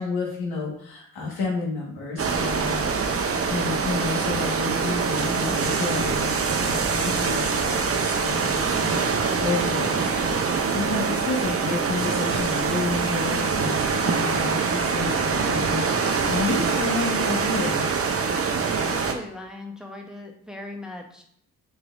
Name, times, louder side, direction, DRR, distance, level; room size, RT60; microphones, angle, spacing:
voice 1, 0.0-3.2 3.5-6.3 6.6-10.4 10.7-17.9, left 4 dB, 70° left, -2 dB, 1.8 m, -30 dB
sound 1, 2.2-19.1, right 5 dB, 35° right, 0.8 m, -24 dB
voice 2, 18.6-21.2, left 2 dB, ahead, 1 dB, 1.0 m, -39 dB
6.1 x 3.2 x 2.7 m, 0.67 s
hypercardioid pair, 45°, 39 cm